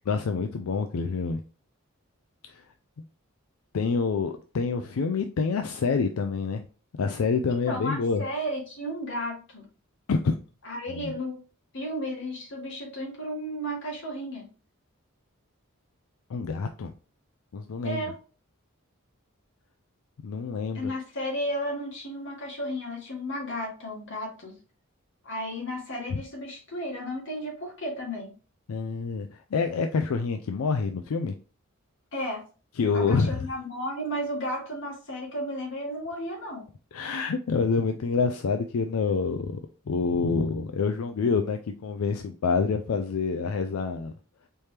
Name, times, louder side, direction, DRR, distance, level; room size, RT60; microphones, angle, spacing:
voice 1, 0.1-1.4 2.5-2.7 3.7-6.6 7.0-8.2 10.1-10.3 10.9-11.1 16.3-16.9 17.5-18.0 20.2-20.9 26.1-26.2 28.7-31.3 32.8-33.5 36.9-39.6 39.9-44.1, left 4 dB, 85° left, 0.4 m, -27 dB
voice 2, 7.5-9.6 10.6-11.4 11.7-14.5 17.8-18.2 20.7-24.5 25.2-28.3 32.1-32.4 32.9-36.7, equal, 60° left, 1.7 m, -33 dB
4.3 x 3.4 x 3.2 m
head